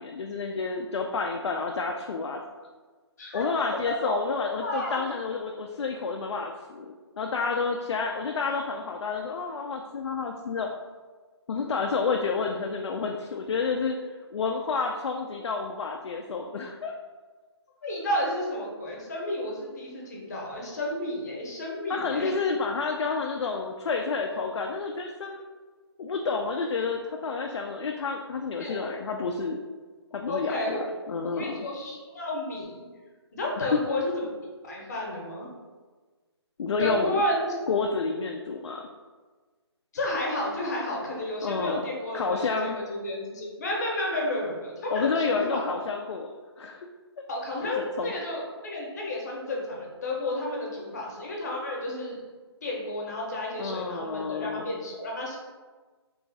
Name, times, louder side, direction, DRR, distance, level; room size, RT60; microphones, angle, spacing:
voice 1, 0.0-2.4 3.3-10.7 11.5-14.0 14.3-16.9 21.9-25.4 26.0-29.6 30.1-31.6 33.6-33.8 36.6-37.2 37.7-38.9 41.4-41.8 42.1-42.8 44.9-46.3 46.6-46.9 47.6-48.1 53.6-54.7, left 4 dB, 80° left, 2 dB, 0.4 m, -30 dB
voice 2, 3.2-3.5 4.0-5.0 17.8-22.3 28.6-28.8 30.3-30.8 31.3-32.8 33.3-34.3 34.6-35.5 36.8-37.5 39.9-45.7 47.3-52.2 52.6-55.4, left 1 dB, 40° left, -2 dB, 0.8 m, -31 dB
3.1 x 2.4 x 3.9 m, 1.4 s
hypercardioid pair, 170°, 14 cm